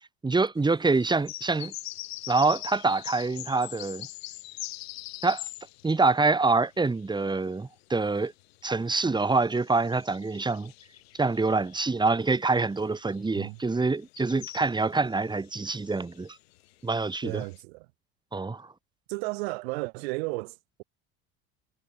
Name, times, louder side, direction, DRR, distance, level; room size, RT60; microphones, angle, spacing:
voice 1, 0.2-1.7 2.3-4.1 5.2-5.4 5.8-8.3 8.6-10.7 11.2-16.4 16.8-17.4 18.3-18.7, right 3 dB, 15° right, 2.7 m, -26 dB
sound 1, 0.8-7.4 7.8-17.6, left 18 dB, 90° left, 3.5 m, -43 dB
voice 2, 17.2-17.9 19.1-20.8, right 27 dB, 80° right, 3.1 m, -34 dB
supercardioid pair, 100°, 30 cm